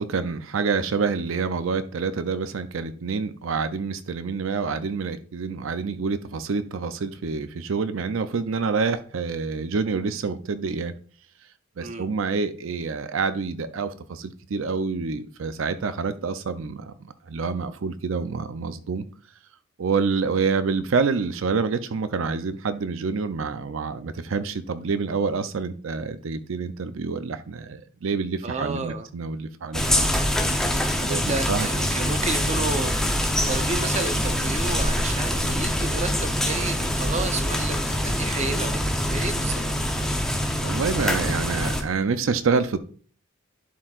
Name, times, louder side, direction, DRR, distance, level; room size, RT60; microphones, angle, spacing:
voice 1, 0.0-10.9 11.8-16.9 17.2-19.0 19.8-30.1 31.1-31.7 40.6-42.9, right 5 dB, 70° right, 0.5 m, -27 dB
voice 2, 28.4-29.1 31.0-32.9 33.5-39.9, right 3 dB, 35° right, 0.7 m, -31 dB
sound 1, 29.7-41.8, equal, 5° left, 0.7 m, -24 dB
11.0 x 4.5 x 2.4 m
head